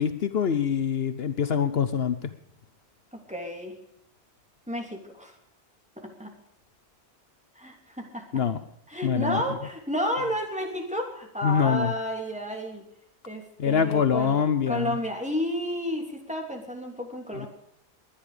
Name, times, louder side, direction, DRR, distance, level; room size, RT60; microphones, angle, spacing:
voice 1, 0.0-2.3 8.3-8.6 9.0-9.4 11.4-11.9 13.6-15.0 17.3-17.5, left 7 dB, 65° left, 11 dB, 1.1 m, -24 dB
voice 2, 3.3-3.8 4.7-5.4 6.0-6.3 7.5-8.3 8.9-12.8 13.3-14.4 14.7-17.5, equal, 5° right, 1 dB, 3.0 m, -31 dB
21.5 x 10.5 x 5.0 m, 0.73 s
omnidirectional pair, 1.1 m